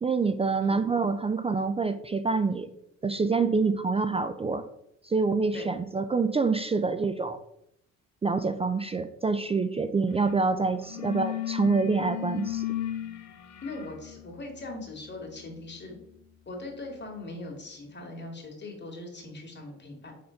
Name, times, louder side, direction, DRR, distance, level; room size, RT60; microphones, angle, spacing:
voice 1, 0.0-2.7 3.0-4.7 5.0-7.4 8.2-12.7, right 4 dB, 20° right, 10 dB, 0.4 m, -26 dB
sound 1, 10.1-10.4 10.7-17.3, left 11 dB, 65° left, 0.8 m, -37 dB
voice 2, 13.6-16.0 16.5-20.1, left 2 dB, 35° left, 2 dB, 2.2 m, -40 dB
5.0 x 4.1 x 5.7 m, 0.76 s
cardioid pair, 90°, 30 cm